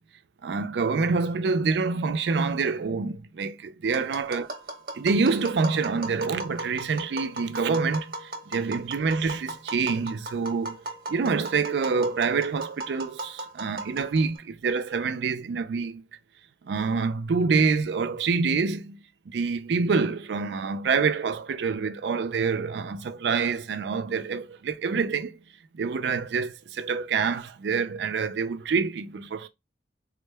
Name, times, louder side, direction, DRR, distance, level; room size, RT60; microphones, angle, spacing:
voice 1, 0.4-4.5 4.9-10.8 11.1-16.0 16.6-19.0 19.3-25.3 25.7-29.5, right 4 dB, 70° right, 0.4 m, -26 dB
Tap, 3.9-14.4, right 2 dB, 50° right, 0.7 m, -37 dB
3.5 x 2.1 x 3.2 m
head